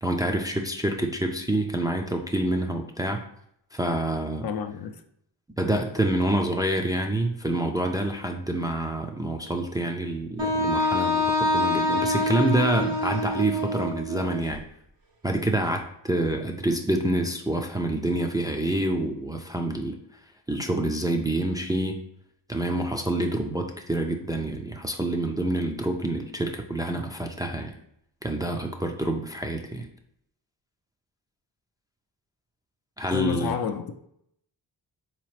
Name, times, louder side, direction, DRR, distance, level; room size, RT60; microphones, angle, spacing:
voice 1, 0.0-3.2 3.7-4.5 5.6-14.6 15.2-20.0 20.5-22.0 22.5-27.8 28.2-29.9 33.0-33.5, right 1 dB, 10° right, 0.4 m, -27 dB
voice 2, 4.4-4.9 33.1-33.9, left 7 dB, 55° left, 0.5 m, -29 dB
Wind instrument woodwind instrument, 10.4-14.4, left 1 dB, 85° right, 1.1 m, -25 dB
4.0 x 2.9 x 3.1 m
cardioid pair, 65°, 44 cm